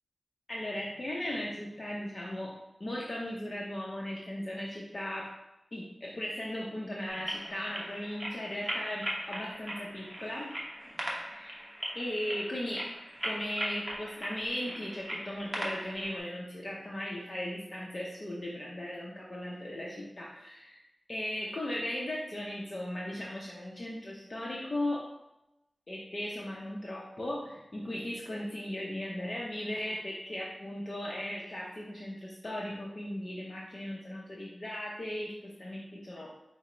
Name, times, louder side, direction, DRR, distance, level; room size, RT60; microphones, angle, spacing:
voice 1, 0.5-2.5 2.8-5.3 5.7-10.5 11.3-11.6 11.9-12.9 13.2-20.8 21.1-25.1 25.9-36.3, left 1 dB, 40° left, -4 dB, 0.6 m, -37 dB
sound 1, 7.1-16.2, equal, 10° right, 0.9 m, -39 dB
4.9 x 2.0 x 4.2 m, 0.91 s
wide cardioid pair, 95°, 0 cm